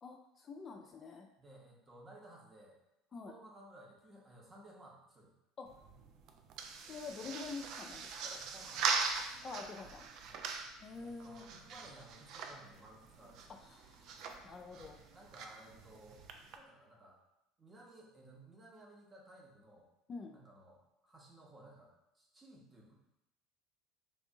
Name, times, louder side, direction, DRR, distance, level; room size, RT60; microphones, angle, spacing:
voice 1, 0.0-1.3 3.1-3.3 5.6-5.7 6.9-8.4 9.4-10.1 10.8-11.5 13.6-14.1 14.4-15.0 20.1-20.4, left 4 dB, 35° left, 3 dB, 0.3 m, -47 dB
voice 2, 1.4-2.8 3.1-5.3 8.3-9.0 10.2-10.4 11.0-13.7 15.1-17.2 17.6-19.9 20.3-22.9, right 1 dB, 25° right, -2 dB, 0.9 m, -57 dB
sound 1, 5.7-16.6, right 5 dB, 55° right, 0.3 m, -42 dB
3.3 x 2.6 x 2.6 m, 0.87 s
hypercardioid pair, 65°, 0 cm